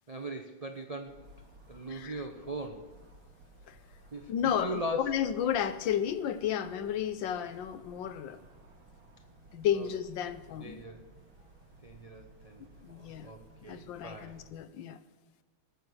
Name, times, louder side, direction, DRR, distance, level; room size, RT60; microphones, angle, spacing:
voice 1, 0.1-1.2 1.7-2.9 4.1-5.1 9.8-9.9 10.6-11.1 11.8-14.4, right 1 dB, 50° right, 4 dB, 0.4 m, -40 dB
sound 1, 1.1-14.5, right 1 dB, 75° right, 2.6 m, -57 dB
voice 2, 1.9-2.2 3.7-3.8 4.3-8.4 9.5-10.8 12.8-13.3 13.7-15.0, left 9 dB, 70° left, 12 dB, 1.4 m, -32 dB
19.0 x 7.0 x 6.3 m, 1.3 s
omnidirectional pair, 2.2 m